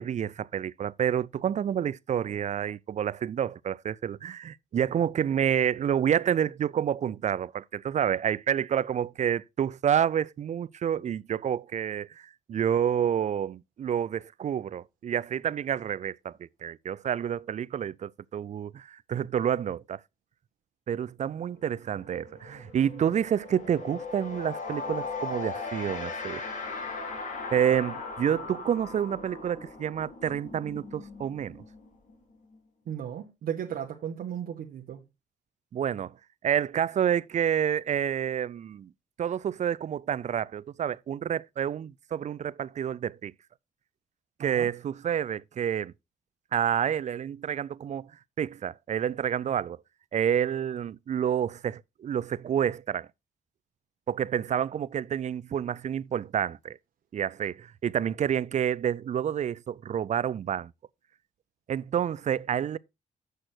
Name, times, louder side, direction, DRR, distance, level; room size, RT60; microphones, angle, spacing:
voice 1, 0.0-20.0 20.9-26.4 27.5-31.6 35.7-36.1 36.4-38.9 39.2-43.3 44.4-45.9 46.5-48.1 48.4-49.8 50.1-53.1 54.1-56.8 57.1-60.7 61.7-62.8, right 9 dB, 50° right, 0.5 m, -29 dB
sound 1, 21.5-21.7 22.0-32.6, left 4 dB, 55° left, 2.8 m, -39 dB
voice 2, 32.9-35.0 44.4-44.7, right 9 dB, 80° right, 1.4 m, -35 dB
7.9 x 6.5 x 4.4 m
cardioid pair, 75°, 15 cm